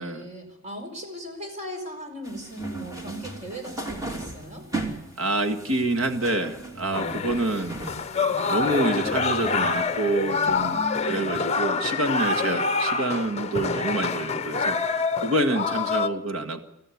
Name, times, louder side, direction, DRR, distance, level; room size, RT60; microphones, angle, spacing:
voice 1, 0.0-4.7 10.7-11.3 12.4-12.7, right 1 dB, 35° right, 4 dB, 5.2 m, -38 dB
sound 1, 2.2-10.9, right 2 dB, 15° right, 3.0 m, -38 dB
voice 2, 5.2-7.8 8.5-16.6, right 2 dB, 90° right, 7 dB, 1.8 m, -27 dB
sound 2, 6.9-16.1, left 4 dB, 30° left, 0.8 m, -26 dB
25.0 x 15.0 x 8.5 m, 0.85 s
head